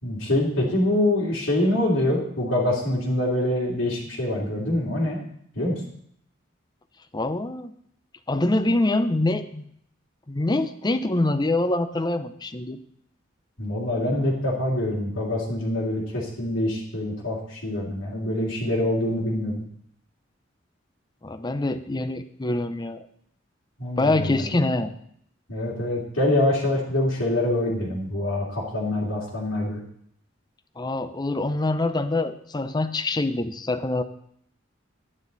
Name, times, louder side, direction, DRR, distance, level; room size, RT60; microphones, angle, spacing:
voice 1, 0.0-5.2 5.5-5.8 13.6-19.6 23.8-24.5 25.5-29.8, left 1 dB, 85° left, -6 dB, 2.9 m, -25 dB
voice 2, 7.1-7.7 8.3-9.6 10.3-12.8 21.2-23.1 24.0-24.9 30.8-34.0, left 2 dB, 20° left, 11 dB, 0.6 m, -25 dB
11.5 x 9.8 x 4.0 m, 0.68 s
head